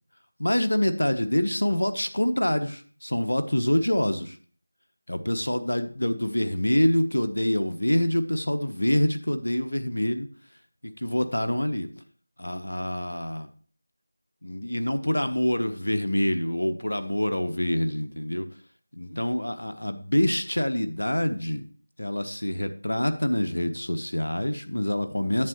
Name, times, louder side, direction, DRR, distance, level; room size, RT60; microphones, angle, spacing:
voice 1, 0.4-4.4 5.1-10.3 10.8-11.9 12.4-13.5 14.4-18.5 18.9-21.6 22.0-25.5, left 1 dB, 80° left, 9 dB, 1.1 m, -26 dB
11.0 x 7.9 x 3.1 m, 0.43 s
figure-of-eight pair, 170°, 0 cm